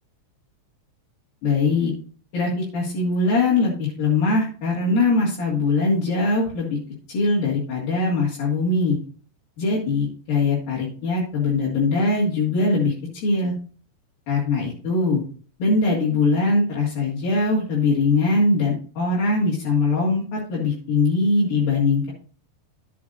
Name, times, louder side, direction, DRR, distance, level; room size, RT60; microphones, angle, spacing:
voice 1, 1.4-1.9 2.3-6.8 7.1-9.0 9.6-12.9 13.2-13.5 14.3-15.2 15.6-22.1, left 3 dB, 60° left, -6 dB, 3.5 m, -21 dB
12.5 x 8.4 x 2.6 m, 0.41 s
omnidirectional pair, 4.9 m